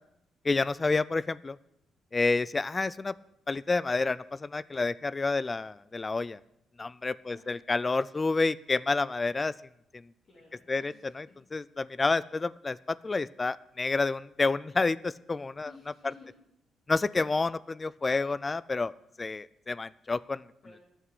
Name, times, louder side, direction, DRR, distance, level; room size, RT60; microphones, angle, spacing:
voice 1, 0.4-1.6 2.1-3.1 3.5-6.4 6.8-9.5 10.7-15.7 16.9-18.9 19.2-20.4, left 3 dB, 25° left, 20 dB, 0.3 m, -29 dB
voice 2, 10.3-11.0 15.6-16.3 20.6-20.8, left 4 dB, 50° left, -5 dB, 3.5 m, -53 dB
9.9 x 7.4 x 7.9 m, 0.80 s
cardioid pair, 90°, 0 cm